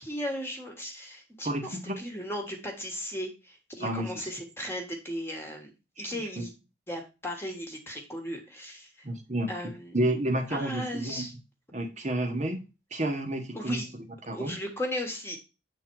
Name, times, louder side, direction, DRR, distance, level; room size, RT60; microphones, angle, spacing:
voice 1, 0.0-6.5 6.9-9.1 9.5-10.0 10.5-11.3 13.5-13.9 14.3-15.4, equal, 10° left, 3 dB, 1.4 m, -36 dB
voice 2, 1.4-1.9 3.8-4.3 6.0-6.1 6.4-6.5 9.0-9.5 9.9-11.3 11.7-12.6 12.9-13.8 14.3-14.6, right 1 dB, 40° right, 3 dB, 1.1 m, -30 dB
8.3 x 3.8 x 4.6 m, 0.29 s
head